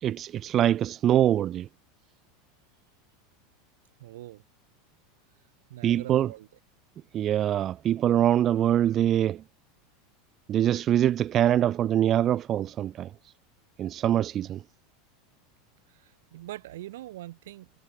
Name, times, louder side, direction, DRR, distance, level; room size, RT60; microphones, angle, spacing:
voice 1, 0.0-1.7 5.8-6.3 7.1-9.4 10.5-13.1 13.8-14.6, right 11 dB, 35° right, 0.4 m, -24 dB
voice 2, 4.0-4.4 5.7-6.5 15.9-17.7, right 15 dB, 65° right, 1.8 m, -43 dB
figure-of-eight pair, 80°, 0 cm